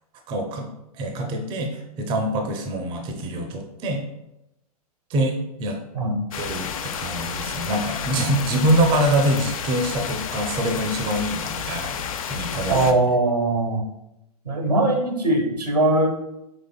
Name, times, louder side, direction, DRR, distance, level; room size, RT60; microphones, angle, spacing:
voice 1, 0.3-0.7 0.9-4.0 5.1-5.8 6.4-12.0 12.3-12.8, right 1 dB, 25° right, 3 dB, 0.5 m, -24 dB
sound 1, 6.3-12.9, left 7 dB, 60° left, 0.4 m, -31 dB
voice 2, 12.7-13.9 14.4-16.1, right 2 dB, 80° right, 3 dB, 0.9 m, -21 dB
5.2 x 3.2 x 2.2 m, 0.88 s
figure-of-eight pair, 105°, 20 cm